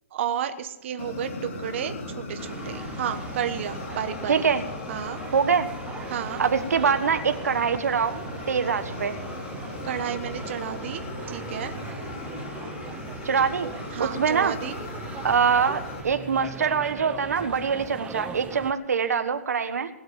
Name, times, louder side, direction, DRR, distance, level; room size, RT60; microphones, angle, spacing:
voice 1, 0.1-1.9 2.3-4.3 4.9-5.2 6.1-6.4 9.8-11.0 11.3-11.7 13.9-14.8, right 9 dB, 50° right, 7 dB, 1.2 m, -31 dB
Fire, 1.0-16.0, left 2 dB, 50° left, 3.5 m, -37 dB
sound 1, 2.4-18.7, right 7 dB, 10° right, 0.7 m, -40 dB
voice 2, 4.3-4.6 5.3-5.7 6.4-8.2 8.5-9.2 13.2-13.7 14.0-14.5 15.2-19.9, right 6 dB, 85° right, 9 dB, 1.5 m, -24 dB
19.5 x 8.0 x 7.5 m, 0.92 s
hypercardioid pair, 155°, 8 cm